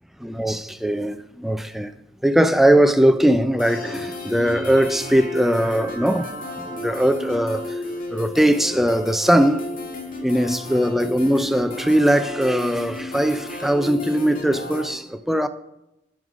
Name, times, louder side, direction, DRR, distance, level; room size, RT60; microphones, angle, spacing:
voice 1, 0.2-1.9 2.2-6.3 6.6-7.7 8.1-9.7 10.2-15.5, right 1 dB, ahead, 0.3 m, -20 dB
sound 1, 3.6-14.9, left 2 dB, 50° left, 1.6 m, -33 dB
9.6 x 5.3 x 5.0 m
head